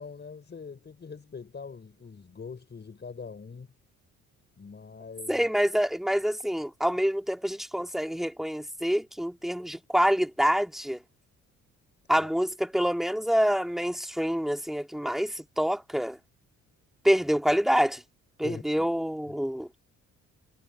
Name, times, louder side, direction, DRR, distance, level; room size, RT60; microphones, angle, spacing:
voice 1, 0.0-3.7 4.6-5.5 12.2-12.3 18.4-18.9 19.3-19.4, left 5 dB, 35° left, 5.0 m, -43 dB
voice 2, 5.3-11.0 12.1-16.2 17.0-18.0 18.4-19.7, equal, ahead, 2.6 m, -26 dB
cardioid pair, 90°, 30 cm